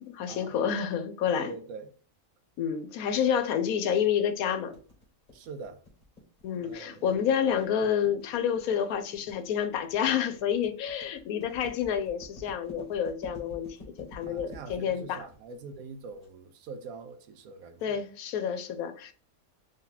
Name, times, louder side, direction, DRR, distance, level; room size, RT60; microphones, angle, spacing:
voice 1, 0.0-1.5 2.6-4.7 6.4-15.2 17.8-19.1, left 8 dB, 75° left, 1.0 m, -29 dB
voice 2, 1.4-1.9 5.3-5.8 6.6-7.2 7.8-7.9 14.3-18.0, right 4 dB, 75° right, 1.0 m, -43 dB
sound 1, 4.7-16.3, left 2 dB, 30° left, 1.4 m, -49 dB
3.3 x 2.8 x 3.9 m
omnidirectional pair, 1.6 m